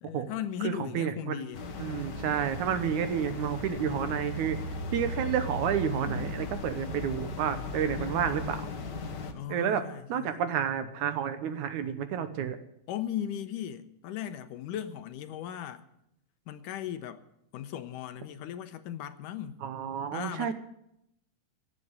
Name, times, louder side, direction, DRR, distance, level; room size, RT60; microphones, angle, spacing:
voice 1, 0.0-1.6 9.3-10.4 12.9-15.8 16.5-17.2 17.5-19.6 20.1-20.5, left 10 dB, 80° left, 2.3 m, -37 dB
voice 2, 0.6-1.4 1.8-8.6 9.5-9.8 10.1-12.6 19.6-20.5, right 8 dB, 70° right, 2.2 m, -30 dB
sound 1, 1.5-9.3, left 2 dB, 55° left, 1.2 m, -37 dB
17.0 x 7.9 x 9.7 m
omnidirectional pair, 3.9 m